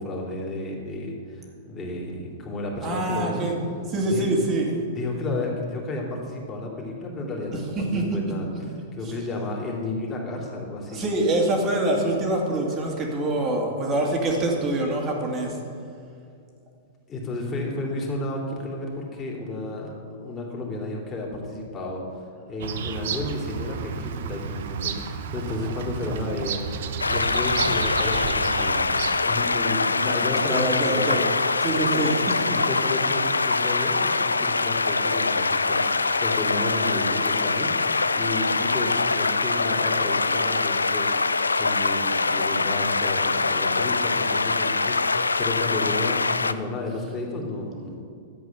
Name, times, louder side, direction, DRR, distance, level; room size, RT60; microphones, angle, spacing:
voice 1, 0.0-3.5 4.1-4.3 4.8-11.0 17.1-19.9 20.2-22.2 22.5-31.2 31.9-48.0, left 2 dB, 25° left, -2 dB, 2.8 m, -32 dB
voice 2, 2.8-3.6 3.9-4.7 7.8-8.2 9.0-9.1 10.9-15.6 29.6-31.3 31.6-32.3, right 2 dB, 30° right, 0 dB, 2.3 m, -25 dB
Bird vocalization bird call bird song, 22.6-29.4, right 6 dB, 60° right, 0.8 m, -32 dB
sound 1, 27.0-46.5, left 3 dB, 85° left, 0.4 m, -24 dB
11.5 x 8.0 x 5.9 m, 2.3 s
figure-of-eight pair, 105°, 0 cm